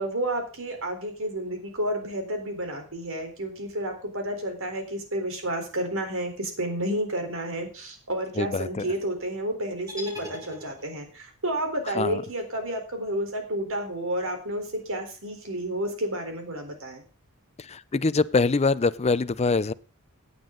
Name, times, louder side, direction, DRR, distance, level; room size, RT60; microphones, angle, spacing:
voice 1, 0.0-17.0, right 1 dB, 65° right, 4 dB, 3.9 m, -31 dB
voice 2, 8.4-8.9 11.9-12.2 17.6-19.7, left 3 dB, 30° left, 18 dB, 0.5 m, -24 dB
sound 1, 9.9-11.2, equal, 15° right, 2.9 m, -41 dB
16.5 x 9.6 x 3.9 m, 0.35 s
head